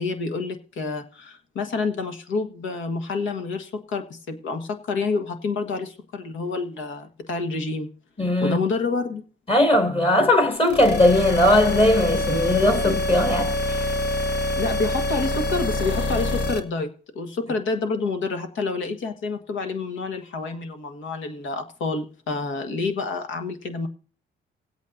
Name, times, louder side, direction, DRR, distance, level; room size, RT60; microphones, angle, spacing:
voice 1, 0.0-7.9 8.4-9.2 14.6-16.9 17.1-23.9, left 4 dB, 75° left, 1.6 m, -28 dB
voice 2, 8.2-8.6 9.5-13.9, left 1 dB, 30° left, 2.2 m, -19 dB
sound 1, 10.6-16.6, left 1 dB, 60° left, 1.3 m, -25 dB
19.0 x 8.3 x 2.7 m
cardioid pair, 90°, 20 cm